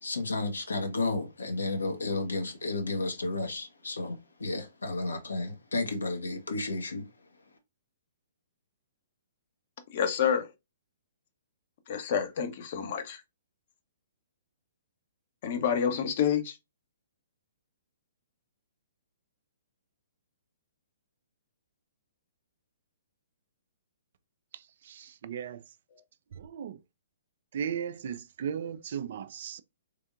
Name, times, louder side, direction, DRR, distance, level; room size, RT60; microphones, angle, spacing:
voice 1, 0.0-7.1, left 2 dB, 75° left, 0.9 m, -32 dB
voice 2, 9.9-10.5 11.9-13.2 15.4-16.6, left 8 dB, 45° left, 0.7 m, -28 dB
voice 3, 24.5-25.6 26.4-26.8 27.5-29.6, right 8 dB, 50° right, 0.3 m, -36 dB
3.5 x 3.3 x 2.4 m
figure-of-eight pair, 120°, 0 cm